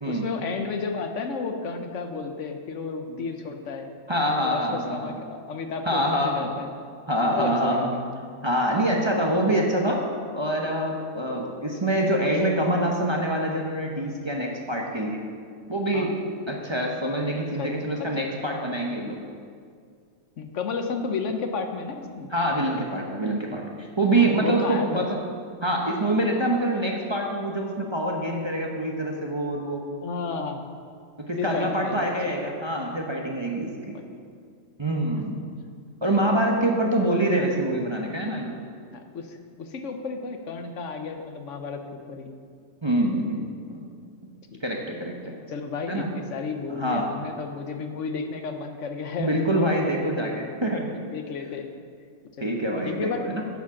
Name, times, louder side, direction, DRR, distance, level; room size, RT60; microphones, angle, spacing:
voice 1, 0.1-3.9 4.3-6.7 7.2-8.0 15.9-16.1 17.6-17.7 18.0-18.1 19.0-19.1 20.4-22.3 24.2-25.1 30.0-30.6 31.4-32.4 33.9-34.0 38.9-42.3 44.5-44.6 45.5-50.3 51.1-51.7 52.4-52.6 52.9-53.3, left 4 dB, 70° left, 5 dB, 1.1 m, -32 dB
voice 2, 4.1-5.2 5.8-6.5 7.1-7.9 8.4-10.0 10.3-15.3 15.7-16.2 16.5-19.2 22.3-25.2 25.6-29.9 31.2-33.9 34.8-35.4 36.0-38.6 42.8-43.9 44.6-45.3 45.9-46.1 46.7-47.1 49.2-50.9 52.4-53.4, right 1 dB, 25° right, -1 dB, 0.8 m, -25 dB
9.4 x 7.3 x 5.9 m, 2.2 s
omnidirectional pair, 1.4 m